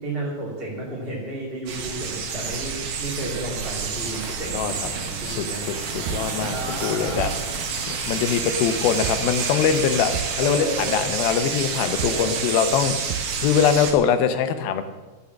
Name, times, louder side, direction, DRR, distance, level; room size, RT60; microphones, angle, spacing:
voice 1, 0.0-5.6 6.3-7.3 10.4-11.1 12.0-12.4, right 2 dB, 20° right, -6 dB, 2.0 m, -32 dB
sound 1, 1.7-13.9, right 5 dB, 65° right, 2.6 m, -29 dB
sound 2, 4.9-5.4 5.7-12.5 12.7-12.8 13.1-14.0, right 9 dB, 85° right, 1.9 m, -36 dB
voice 2, 5.9-7.3 7.9-14.8, left 8 dB, 80° left, 9 dB, 2.5 m, -23 dB
sound 3, 7.2-11.0, left 2 dB, 15° left, 2.4 m, -40 dB
14.0 x 6.5 x 7.0 m, 1.2 s
omnidirectional pair, 4.5 m